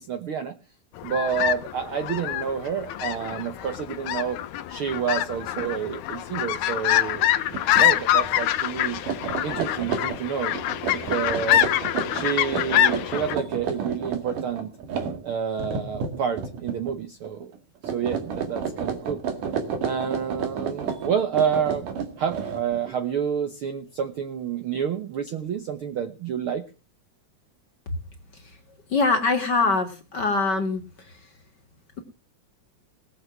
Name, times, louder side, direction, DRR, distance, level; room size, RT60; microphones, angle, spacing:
voice 1, 0.1-0.5 1.0-4.4 4.7-7.3 7.7-9.0 9.4-10.6 10.9-11.6 12.1-14.7 15.2-17.5 17.9-19.2 19.8-21.9 22.2-26.6, right 7 dB, 65° right, 9 dB, 1.4 m, -29 dB
sound 1, 1.0-13.4, left 12 dB, 75° left, 2.2 m, -25 dB
sound 2, 7.5-7.8 8.2-8.4 8.9-16.9 17.2-17.6 17.8-22.9, right 6 dB, 80° right, 3.5 m, -31 dB
voice 2, 28.9-30.8, left 3 dB, 40° left, 5 dB, 1.9 m, -23 dB
19.5 x 7.3 x 6.0 m, 0.34 s
omnidirectional pair, 3.6 m